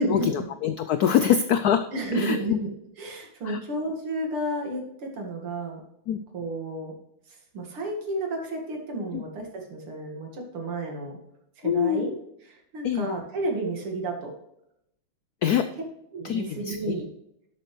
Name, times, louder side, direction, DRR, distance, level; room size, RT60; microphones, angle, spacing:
voice 1, 0.1-1.9 2.1-2.6 3.4-3.6 6.1-6.2 9.1-9.2 11.6-12.1 12.8-13.1 15.4-15.7 16.2-16.9, left 9 dB, 85° left, 10 dB, 0.8 m, -24 dB
voice 2, 1.9-2.7 3.0-5.8 6.3-7.0 7.5-11.2 11.6-12.1 12.7-14.3 16.1-17.1, right 1 dB, 90° right, 1 dB, 2.9 m, -31 dB
12.0 x 8.1 x 3.2 m, 0.78 s
omnidirectional pair, 2.3 m